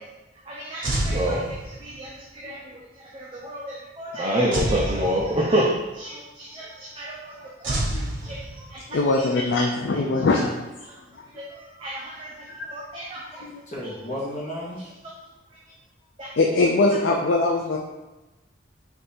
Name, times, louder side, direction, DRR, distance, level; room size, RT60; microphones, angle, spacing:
voice 1, 0.5-2.6 3.1-7.2 7.6-8.4 8.7-8.8 11.4-12.3 12.7-13.2 16.2-16.3, right 1 dB, 30° right, -5 dB, 0.5 m, -28 dB
sound 1, 0.8-2.1 4.5-5.8 7.6-8.9, right 1 dB, 85° right, 0.9 m, -28 dB
voice 2, 8.9-10.6 12.6-12.7 13.4-13.6 16.4-17.8, left 2 dB, 65° left, 0 dB, 0.4 m, -22 dB
voice 3, 13.3-14.9 17.0-17.3, left 1 dB, 40° left, -5 dB, 1.1 m, -34 dB
3.5 x 2.7 x 4.1 m, 1.0 s
head